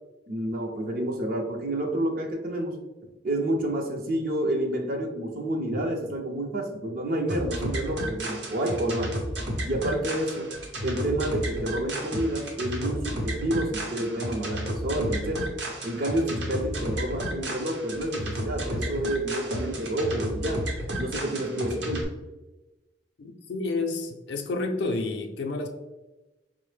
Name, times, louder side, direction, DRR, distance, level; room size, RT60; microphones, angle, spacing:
voice 1, 0.3-2.8 3.2-9.1 9.6-10.5 10.8-15.5 15.8-20.7 21.0-22.2, right 1 dB, 55° right, 0.5 m, -29 dB
sound 1, 7.3-22.0, equal, 80° right, 0.8 m, -32 dB
voice 2, 23.2-25.7, left 3 dB, 70° left, 0.4 m, -30 dB
4.5 x 2.0 x 3.1 m
head